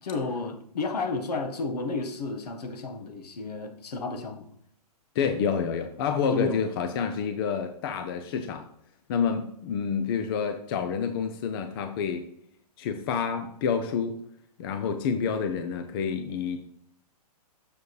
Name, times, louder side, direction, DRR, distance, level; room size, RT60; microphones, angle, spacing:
voice 1, 0.0-4.5 6.3-6.6, left 3 dB, 75° left, 1.3 m, -32 dB
voice 2, 5.1-8.6 9.1-12.3 12.8-14.2 14.6-16.6, left 6 dB, 35° left, 0.6 m, -28 dB
6.8 x 6.8 x 3.2 m
hypercardioid pair, 160°, 20 cm